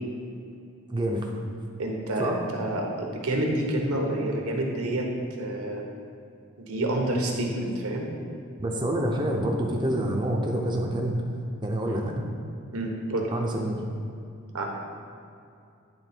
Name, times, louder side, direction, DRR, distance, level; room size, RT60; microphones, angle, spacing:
voice 1, 0.9-1.3 2.2-2.4 8.6-11.2 11.6-12.2 13.3-13.8, right 1 dB, 20° right, 0 dB, 0.5 m, -27 dB
voice 2, 1.8-5.1 5.4-5.8 6.7-8.1 11.8-12.0 12.7-13.3 14.5-14.6, right 1 dB, 85° right, 1 dB, 1.1 m, -28 dB
9.8 x 3.6 x 4.3 m, 2.5 s
head